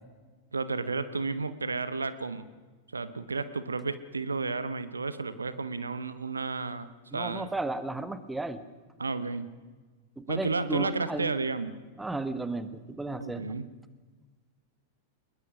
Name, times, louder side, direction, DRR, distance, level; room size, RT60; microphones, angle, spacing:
voice 1, 0.5-2.5 2.9-7.5 9.0-9.5 10.3-11.7 13.2-13.7, right 4 dB, 80° right, 14 dB, 1.2 m, -32 dB
voice 2, 7.1-8.6 10.2-11.3 12.0-13.5, right 2 dB, 5° right, 13 dB, 1.5 m, -34 dB
22.0 x 21.0 x 6.3 m, 1.4 s
figure-of-eight pair, 95°, 0 cm